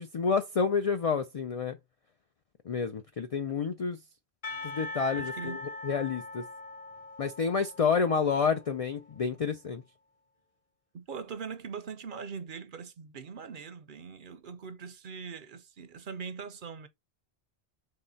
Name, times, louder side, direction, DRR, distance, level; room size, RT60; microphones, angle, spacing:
voice 1, 0.0-1.8 2.7-4.0 4.6-5.6 5.8-6.4 7.2-9.8, left 5 dB, 60° left, 0.3 m, -29 dB
Percussion / Church bell, 4.4-9.2, left 2 dB, 35° left, 0.8 m, -42 dB
voice 2, 5.1-5.6 7.6-7.7 10.9-16.9, right 6 dB, 55° right, 0.7 m, -41 dB
3.8 x 3.1 x 3.9 m
omnidirectional pair, 1.1 m